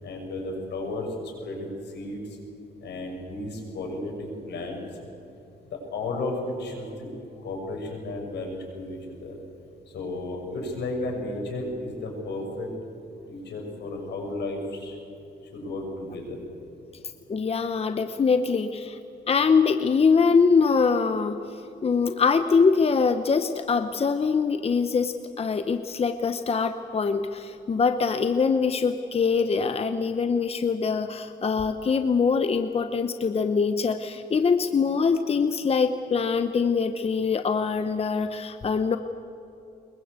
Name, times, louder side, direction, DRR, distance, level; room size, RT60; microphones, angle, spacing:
voice 1, 0.0-2.4 2.8-4.9 5.7-9.4 9.9-12.7 13.3-15.0 15.5-16.4, left 2 dB, 80° left, 1 dB, 6.6 m, -33 dB
voice 2, 17.3-19.0 19.3-39.0, left 5 dB, 35° left, 9 dB, 0.9 m, -23 dB
23.5 x 22.0 x 8.2 m, 2.9 s
cardioid pair, 115°, 17 cm